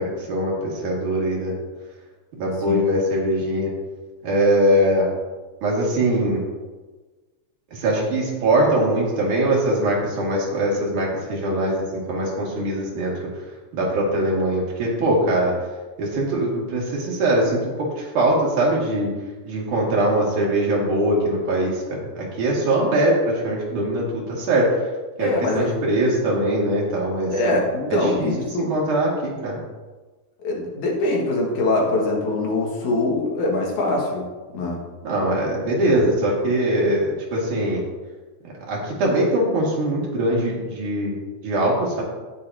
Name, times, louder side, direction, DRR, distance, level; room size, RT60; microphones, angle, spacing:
voice 1, 0.0-1.5 2.3-3.7 4.2-5.1 5.6-6.4 7.7-13.4 13.7-15.5 16.0-19.1 19.5-24.8 25.2-27.3 28.0-29.6 35.0-37.8 38.7-41.2 41.4-42.0, right 1 dB, 80° right, -4 dB, 3.8 m, -22 dB
voice 2, 25.2-25.7 27.3-28.7 30.4-34.3 34.5-34.8 35.9-36.0, left 2 dB, 75° left, -2 dB, 3.2 m, -23 dB
18.0 x 6.2 x 2.8 m, 1.3 s
omnidirectional pair, 3.5 m